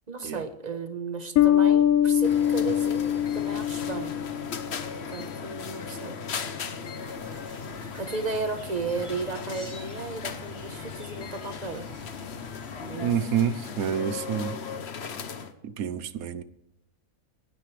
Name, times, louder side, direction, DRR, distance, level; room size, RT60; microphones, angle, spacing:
voice 1, 0.1-4.1 5.1-6.2 7.8-11.9 12.8-13.1, right 4 dB, 30° right, 8 dB, 1.1 m, -34 dB
Bass guitar, 1.4-4.8, left 10 dB, 75° left, 1.1 m, -23 dB
sound 1, 2.2-15.5, left 6 dB, 50° left, 1.1 m, -37 dB
sound 2, 7.0-13.2, right 1 dB, 20° left, 3.6 m, -49 dB
voice 2, 13.0-14.5 15.6-16.4, right 8 dB, 80° right, 14 dB, 1.2 m, -28 dB
25.5 x 9.5 x 3.4 m, 0.84 s
omnidirectional pair, 1.5 m